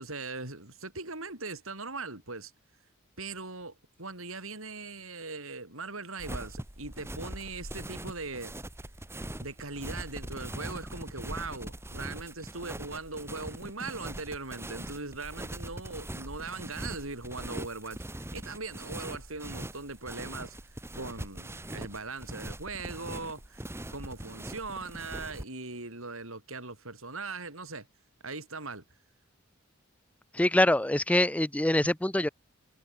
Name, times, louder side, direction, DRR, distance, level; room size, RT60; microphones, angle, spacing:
voice 1, 0.0-2.5 3.2-8.5 9.4-23.6 23.9-27.9 28.2-28.8, right 3 dB, 80° right, 7.8 m, -40 dB
sound 1, 6.2-25.4, right 1 dB, 10° right, 1.7 m, -41 dB
voice 2, 30.3-32.3, left 1 dB, 5° left, 0.5 m, -24 dB
head